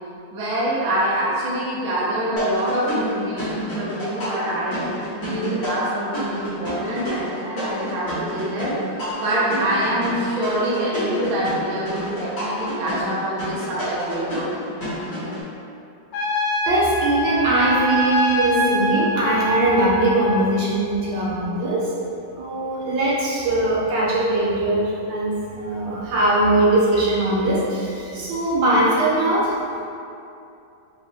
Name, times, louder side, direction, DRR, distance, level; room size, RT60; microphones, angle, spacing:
voice 1, 0.3-4.8 5.1-14.5, right 1 dB, 55° right, -7 dB, 1.0 m, -25 dB
sound 1, 2.4-15.4, left 1 dB, 50° left, 1.5 m, -29 dB
Trumpet, 16.1-20.5, left 1 dB, 80° left, 1.2 m, -24 dB
voice 2, 16.7-21.9 22.3-29.6, right 1 dB, 85° right, -6 dB, 1.5 m, -21 dB
3.8 x 2.1 x 4.3 m, 2.6 s
omnidirectional pair, 2.0 m